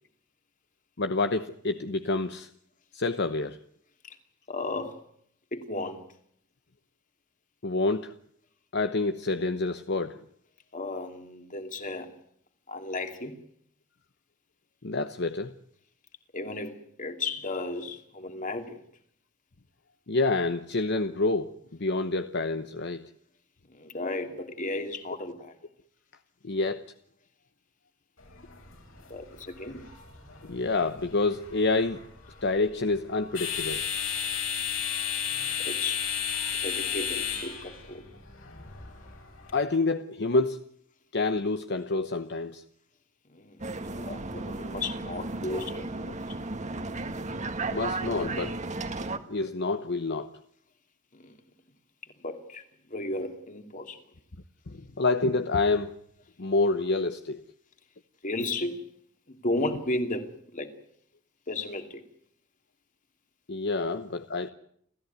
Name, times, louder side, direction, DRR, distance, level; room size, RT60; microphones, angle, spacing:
voice 1, 1.0-2.5 2.9-3.6 7.6-8.1 8.7-10.2 14.8-15.5 20.1-23.0 26.4-26.8 30.5-32.0 32.4-33.9 39.5-40.6 41.1-42.6 47.7-48.6 49.0-50.3 54.7-56.0 56.4-57.4 63.5-64.5, left 3 dB, 55° left, 1.0 m, -28 dB
voice 2, 4.5-5.0 5.5-6.0 10.7-12.1 12.7-13.4 16.3-18.8 23.7-25.6 29.1-29.9 35.6-36.0 36.6-38.0 43.3-46.2 51.1-51.3 52.2-52.6 52.9-54.0 58.2-58.8 59.3-60.7 61.5-62.0, left 2 dB, 40° left, 2.7 m, -34 dB
sound 1, 28.2-39.5, left 8 dB, 75° left, 7.8 m, -34 dB
sound 2, 43.6-49.2, right 2 dB, 35° right, 1.6 m, -34 dB
29.5 x 14.5 x 9.4 m
head